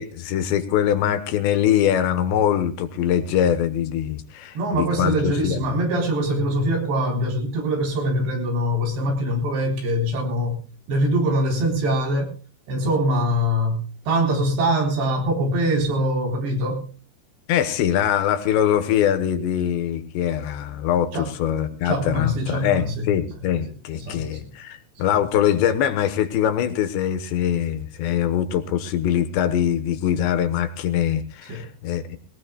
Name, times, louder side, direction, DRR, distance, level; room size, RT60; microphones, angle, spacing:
voice 1, 0.0-5.6 17.5-32.2, left 10 dB, 80° left, 10 dB, 3.4 m, -23 dB
voice 2, 4.6-10.6 10.9-12.3 12.7-16.9 21.1-21.3 21.8-23.1 23.9-24.5 31.5-31.7, equal, 75° right, 2 dB, 6.1 m, -23 dB
22.0 x 18.5 x 2.3 m, 0.36 s
omnidirectional pair, 5.1 m